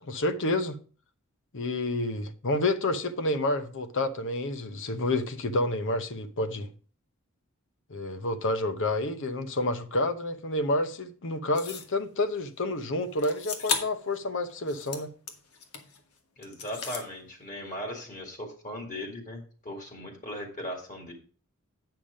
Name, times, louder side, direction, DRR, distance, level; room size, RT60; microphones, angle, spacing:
voice 1, 0.0-0.8 1.5-6.7 7.9-15.1, left 2 dB, 60° left, 0.8 m, -29 dB
sound 1, 11.5-11.9 13.2-14.0 14.5-16.0 16.4-17.1, left 5 dB, 80° left, 1.4 m, -35 dB
voice 2, 16.4-21.1, left 1 dB, 35° left, 2.2 m, -38 dB
8.7 x 5.9 x 5.1 m
head